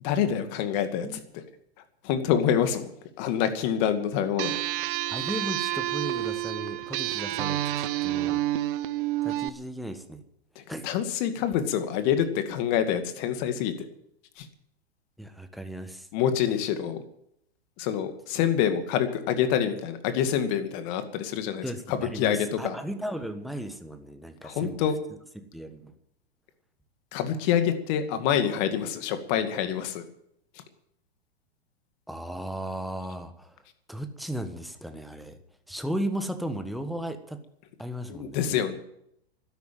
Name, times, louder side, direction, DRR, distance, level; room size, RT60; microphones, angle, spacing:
voice 1, 0.0-1.1 1.3-1.4 2.0-2.9 3.2-4.5 10.8-13.9 14.4-14.5 16.1-17.0 17.8-22.8 24.4-25.0 27.1-30.0 38.1-38.8, left 9 dB, 45° left, 9 dB, 2.2 m, -26 dB
sound 1, 4.4-9.5, right 15 dB, 55° right, 0.9 m, -29 dB
voice 2, 5.1-8.4 9.2-10.2 10.7-10.9 15.2-16.1 21.6-24.9 25.5-25.9 32.1-33.5 33.9-35.4 35.7-37.4 37.8-38.6, equal, ahead, 7 dB, 1.3 m, -35 dB
12.5 x 10.5 x 9.2 m, 0.74 s
hypercardioid pair, 125°, 32 cm